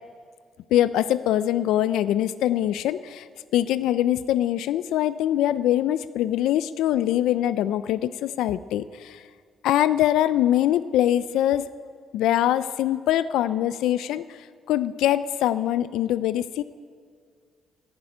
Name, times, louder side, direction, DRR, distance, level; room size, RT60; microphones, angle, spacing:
voice 1, 0.7-3.3 3.5-9.2 9.6-11.7 12.1-14.4 14.7-16.6, left 12 dB, 90° left, 15 dB, 0.3 m, -23 dB
11.0 x 9.9 x 9.6 m, 2.1 s
cardioid pair, 105°, 0 cm